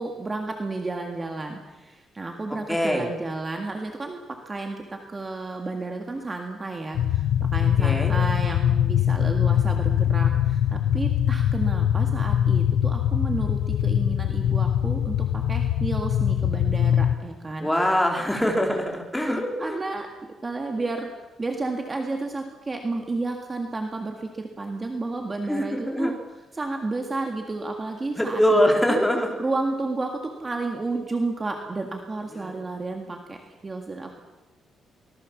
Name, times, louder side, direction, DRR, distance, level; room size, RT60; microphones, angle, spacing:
voice 1, 0.0-17.7 18.3-18.5 19.6-21.1 21.4-26.1 26.5-28.6 28.9-29.0 29.4-30.1 30.4-34.2, right 3 dB, 20° right, 3 dB, 1.9 m, -32 dB
voice 2, 2.7-3.1 7.8-8.1 17.6-19.8 25.5-26.1 28.2-29.4 32.3-32.5, equal, 5° left, 1 dB, 3.4 m, -23 dB
sound 1, 6.9-17.2, left 10 dB, 85° left, 0.9 m, -22 dB
24.5 x 19.0 x 7.3 m, 1.1 s
cardioid pair, 170°, 0 cm